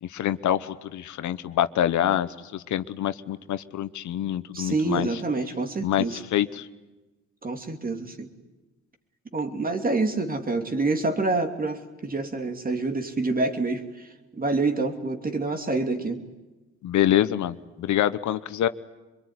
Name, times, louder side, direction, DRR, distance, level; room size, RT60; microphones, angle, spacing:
voice 1, 0.0-5.2 5.8-6.7 16.8-18.7, left 11 dB, 70° left, 13 dB, 1.0 m, -26 dB
voice 2, 4.5-6.2 7.4-8.3 9.3-14.1 14.3-16.2, right 3 dB, 30° right, 6 dB, 2.8 m, -27 dB
24.5 x 22.5 x 9.6 m, 1.1 s
cardioid pair, 90°, 30 cm